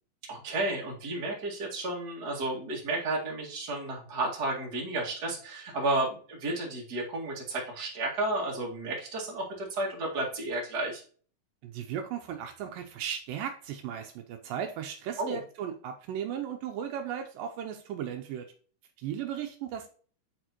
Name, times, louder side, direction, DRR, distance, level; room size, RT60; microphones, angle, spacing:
voice 1, 0.3-11.0 15.2-15.4, right 2 dB, 35° right, -3 dB, 2.2 m, -32 dB
voice 2, 11.6-18.5 19.0-19.9, right 9 dB, 80° right, 5 dB, 2.3 m, -36 dB
10.5 x 4.2 x 3.0 m, 0.43 s
omnidirectional pair, 4.0 m